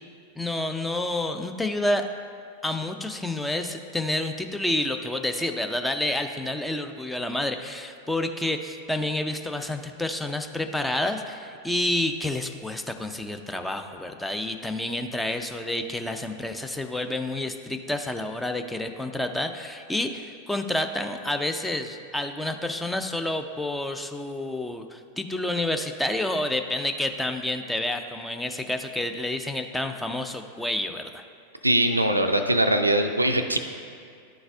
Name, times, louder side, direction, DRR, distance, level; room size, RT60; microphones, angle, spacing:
voice 1, 0.4-2.1 2.6-31.2, left 1 dB, 5° left, 5 dB, 0.4 m, -29 dB
voice 2, 31.6-33.6, right 1 dB, 85° right, 6 dB, 0.3 m, -21 dB
11.5 x 4.0 x 2.5 m, 2.3 s
figure-of-eight pair, 90°, 0 cm